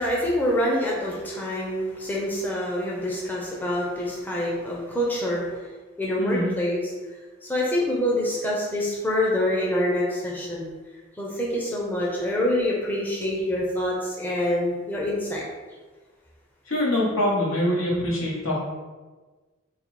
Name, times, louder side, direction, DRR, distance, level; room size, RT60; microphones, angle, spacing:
voice 1, 0.0-5.7 6.0-6.9 7.4-10.7 11.2-15.4, left 1 dB, 10° left, -4 dB, 0.6 m, -26 dB
voice 2, 6.2-6.5 16.7-18.6, left 1 dB, 85° left, -5 dB, 1.4 m, -24 dB
4.0 x 2.3 x 4.3 m, 1.3 s
head